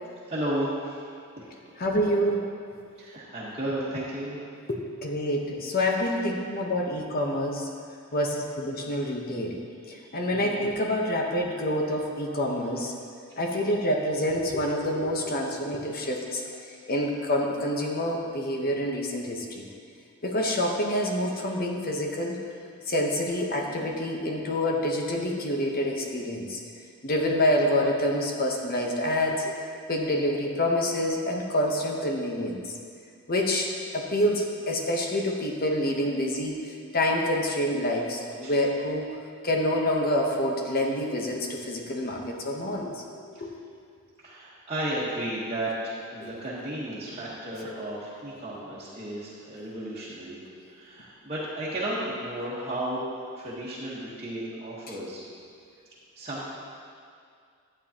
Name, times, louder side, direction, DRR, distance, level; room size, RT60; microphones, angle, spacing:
voice 1, 0.3-1.0 1.4-1.8 3.0-4.4 9.9-10.0 10.3-10.5 15.9-16.1 38.4-38.5 44.2-50.4 50.7-53.0 53.3-55.2 56.1-56.5, right 1 dB, 25° right, -9 dB, 1.3 m, -33 dB
voice 2, 1.8-2.4 4.7-7.7 8.1-9.6 9.9-12.9 13.4-16.4 16.9-19.7 20.2-22.4 22.9-26.6 27.0-29.5 29.9-32.7 33.3-39.1 39.4-43.0 43.4-43.5 46.2-46.3, left 1 dB, 40° left, 0 dB, 1.0 m, -27 dB
12.0 x 8.8 x 2.9 m, 2.3 s
head